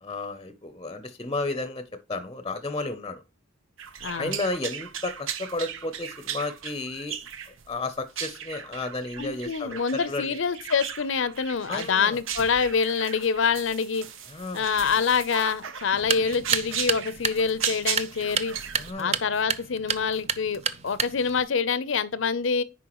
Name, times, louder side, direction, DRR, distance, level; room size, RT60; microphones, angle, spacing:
voice 1, 0.0-3.2 4.0-7.2 7.7-10.4 11.7-12.2 14.3-14.6 18.8-19.2, left 2 dB, 20° left, 0.6 m, -33 dB
sound 1, 3.8-18.9, right 8 dB, 75° right, 0.8 m, -37 dB
voice 2, 4.0-4.4 9.2-14.1 14.5-18.5 19.0-22.6, left 5 dB, 70° left, 0.6 m, -26 dB
sound 2, 15.9-21.4, right 7 dB, 35° right, 0.5 m, -31 dB
10.0 x 4.6 x 3.0 m
head